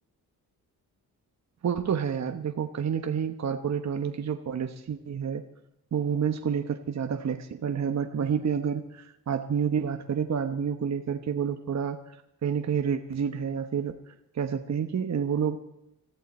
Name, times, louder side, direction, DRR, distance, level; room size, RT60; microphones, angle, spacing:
voice 1, 1.6-5.4 5.9-12.2 12.4-14.0 14.3-15.6, right 7 dB, 45° right, 6 dB, 1.0 m, -29 dB
21.5 x 14.5 x 4.3 m, 0.84 s
wide cardioid pair, 135°, 39 cm